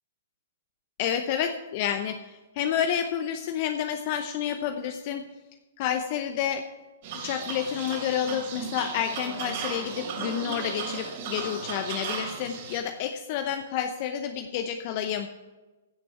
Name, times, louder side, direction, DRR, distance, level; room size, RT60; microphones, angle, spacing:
voice 1, 1.0-5.2 5.8-6.6 7.2-15.3, left 9 dB, 45° left, 7 dB, 0.7 m, -29 dB
sound 1, 7.0-12.8, right 6 dB, 50° right, 3.4 m, -35 dB
16.0 x 6.0 x 5.9 m, 1.1 s
hypercardioid pair, 125°, 0 cm